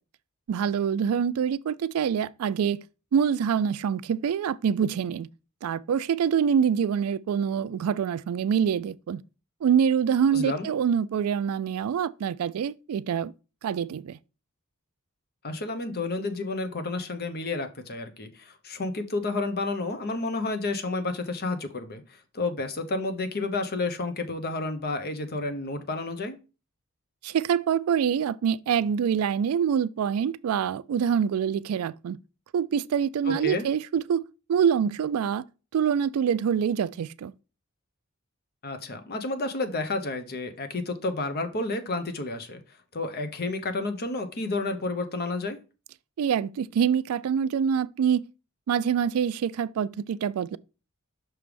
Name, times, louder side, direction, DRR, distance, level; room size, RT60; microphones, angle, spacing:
voice 1, 0.5-2.8 3.1-5.3 5.6-9.2 9.6-13.3 13.6-14.2 27.2-32.2 32.5-34.2 34.5-35.4 35.7-37.3 46.2-48.2 48.7-50.6, right 7 dB, 85° right, 0.3 m, -25 dB
voice 2, 10.3-10.7 15.4-26.4 33.3-33.7 38.6-42.6 42.9-45.6, left 2 dB, 45° left, 0.8 m, -31 dB
6.1 x 3.3 x 5.0 m
head